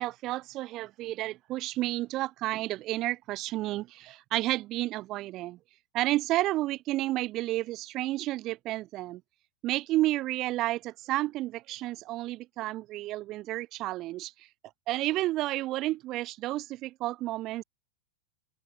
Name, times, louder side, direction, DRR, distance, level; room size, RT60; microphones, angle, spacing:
voice 1, 0.0-5.6 5.9-9.2 9.6-14.5 14.9-17.6, right 17 dB, 40° right, 2.2 m, -31 dB
open air
hypercardioid pair, 130°, 0 cm